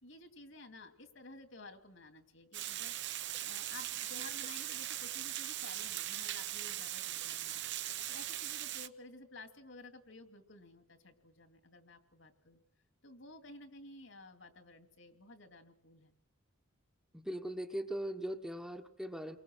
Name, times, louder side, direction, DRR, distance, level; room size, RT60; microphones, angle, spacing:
voice 1, 0.0-2.9 3.4-7.7 8.1-12.6 13.0-16.1, left 2 dB, 60° left, 7 dB, 2.6 m, -54 dB
Water, 2.5-8.9, right 13 dB, 55° right, 1.0 m, -40 dB
voice 2, 17.1-19.4, right 1 dB, 5° right, 4 dB, 1.2 m, -40 dB
30.0 x 23.5 x 6.2 m, 0.68 s
head